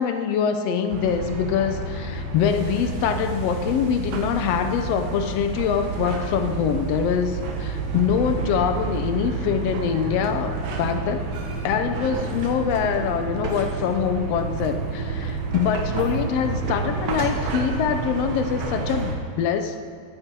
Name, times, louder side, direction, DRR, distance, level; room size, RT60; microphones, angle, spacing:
voice 1, 0.0-11.2 11.6-19.9, left 7 dB, 75° left, 7 dB, 1.6 m, -24 dB
sound 1, 0.9-19.2, right 4 dB, 65° right, 2.3 m, -29 dB
14.5 x 10.5 x 4.6 m, 2.4 s
omnidirectional pair, 3.4 m